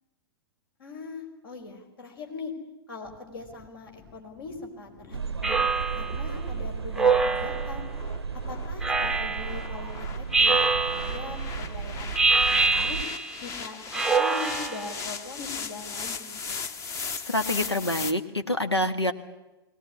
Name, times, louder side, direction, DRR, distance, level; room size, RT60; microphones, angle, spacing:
voice 1, 0.8-2.5 2.9-5.6 6.0-7.8 8.5-10.6 10.9-13.0 13.4-16.4, left 3 dB, 60° left, 3 dB, 4.9 m, -41 dB
sound 1, 3.1-18.1, left 5 dB, 20° left, 1.0 m, -39 dB
sound 2, 5.1-13.0, right 5 dB, 80° right, 0.7 m, -34 dB
Speech synthesizer, 5.4-6.2 7.0-7.8 8.8-9.6 10.3-11.3 12.1-13.4 13.9-15.0, right 4 dB, 5° right, 0.8 m, -24 dB
voice 2, 17.2-19.1, left 1 dB, 90° left, 8 dB, 1.7 m, -26 dB
21.5 x 18.0 x 9.8 m, 1.0 s
figure-of-eight pair, 110°, 13 cm